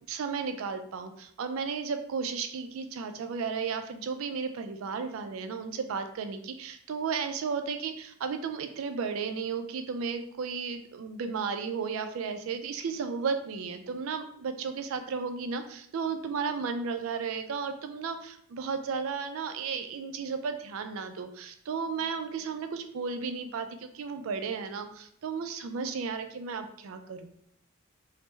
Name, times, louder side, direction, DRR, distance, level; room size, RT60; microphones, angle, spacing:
voice 1, 0.1-27.3, right 5 dB, 80° right, 8 dB, 0.4 m, -34 dB
3.2 x 2.0 x 3.1 m, 0.67 s
head